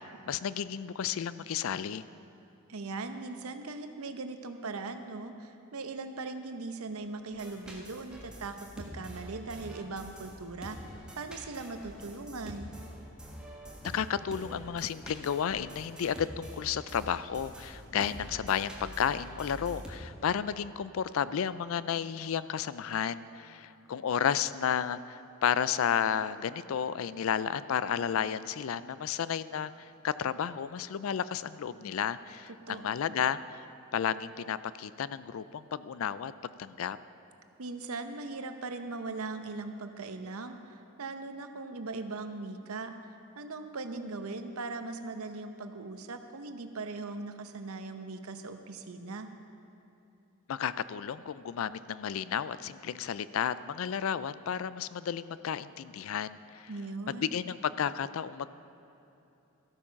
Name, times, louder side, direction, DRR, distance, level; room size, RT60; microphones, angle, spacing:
voice 1, 0.3-2.0 13.8-33.6 33.9-37.0 50.5-56.7 57.1-58.5, left 8 dB, 65° left, 16 dB, 0.4 m, -32 dB
voice 2, 2.7-10.8 11.2-12.7 32.5-32.8 33.1-33.2 37.6-43.0 43.4-49.3 56.7-57.4, right 3 dB, 75° right, 8 dB, 0.8 m, -39 dB
sound 1, 7.3-20.0, equal, 5° right, 1.3 m, -46 dB
13.5 x 8.6 x 5.7 m, 2.9 s
head